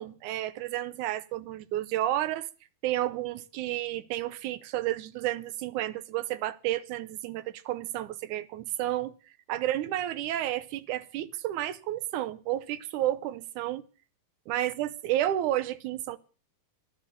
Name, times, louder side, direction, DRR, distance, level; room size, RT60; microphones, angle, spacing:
voice 1, 0.0-2.5 2.8-9.1 9.5-13.8 14.5-16.2, right 13 dB, 70° right, 2.0 m, -31 dB
14.0 x 12.0 x 7.0 m
omnidirectional pair, 4.2 m